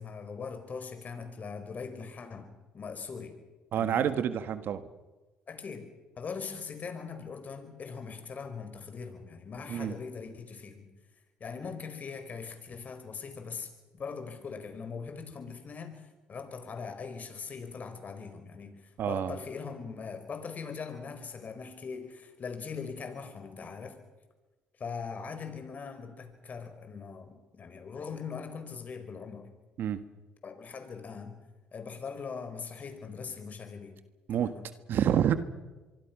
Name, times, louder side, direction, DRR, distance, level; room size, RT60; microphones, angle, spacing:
voice 1, 0.0-3.4 3.7-4.1 5.5-5.9 6.2-10.9 11.4-24.0 24.8-29.5 30.4-31.3 31.7-34.0 34.3-34.7, left 5 dB, 45° left, 7 dB, 5.1 m, -41 dB
voice 2, 3.7-4.8 9.7-9.9 19.0-19.3 29.8-30.0 34.3-34.5 34.9-35.3, right 9 dB, 65° right, 11 dB, 1.5 m, -28 dB
24.5 x 24.0 x 6.2 m, 1.2 s
supercardioid pair, 70°, 4 cm